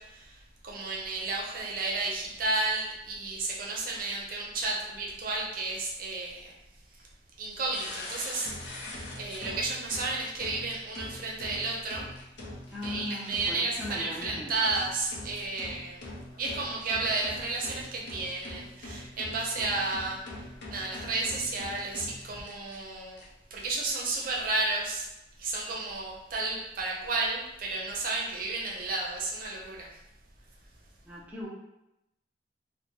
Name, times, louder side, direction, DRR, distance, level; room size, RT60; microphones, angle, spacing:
voice 1, 0.0-6.5 6.9-7.1 7.4-12.1 12.8-16.0 16.4-23.2 23.5-25.1 25.4-30.0, right 3 dB, 55° right, -2 dB, 0.6 m, -32 dB
sound 1, 7.7-22.8 23.2-23.3 23.6-24.2, left 1 dB, 90° left, 0.6 m, -43 dB
voice 2, 12.7-14.6 31.0-31.5, left 1 dB, 10° right, -6 dB, 0.4 m, -39 dB
2.9 x 2.1 x 2.8 m, 0.88 s
head